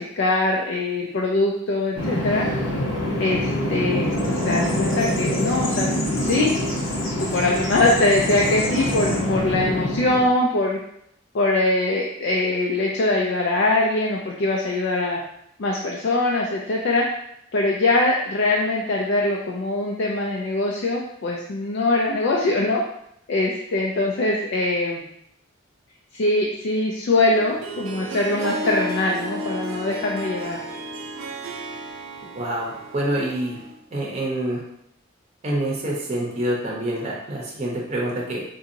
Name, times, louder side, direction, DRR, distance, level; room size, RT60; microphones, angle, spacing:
voice 1, 0.0-2.5 3.2-6.6 7.2-10.8 11.3-15.2 15.6-17.0 17.5-22.8 23.3-25.0 26.1-30.6, left 2 dB, 60° left, -2 dB, 0.4 m, -22 dB
Bird vocalization bird call bird song, 2.0-10.3, left 1 dB, 75° left, 0.8 m, -25 dB
Harp, 27.3-33.8, right 1 dB, 85° right, 0.5 m, -33 dB
voice 2, 32.3-33.6 33.9-34.6 35.4-38.4, right 1 dB, 30° right, -3 dB, 0.7 m, -26 dB
3.9 x 2.7 x 2.6 m, 0.76 s
head